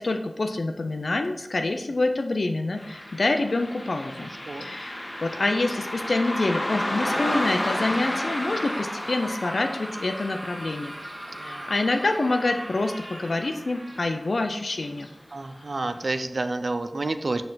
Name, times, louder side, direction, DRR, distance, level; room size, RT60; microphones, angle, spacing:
voice 1, 0.0-4.3 4.6-10.9 11.4-15.1, left 2 dB, 85° left, 6 dB, 0.4 m, -26 dB
Car passing by, 2.8-13.6 13.9-14.0 14.9-15.1 15.6-15.7 16.2-16.3, left 1 dB, 50° left, 1.3 m, -32 dB
voice 2, 4.2-4.7 11.3-11.7 15.3-17.4, right 2 dB, 85° right, 9 dB, 0.4 m, -30 dB
Screaming, 7.9-14.4, right 1 dB, 55° right, 1.4 m, -39 dB
6.5 x 4.2 x 4.0 m, 0.89 s
wide cardioid pair, 45°, 0 cm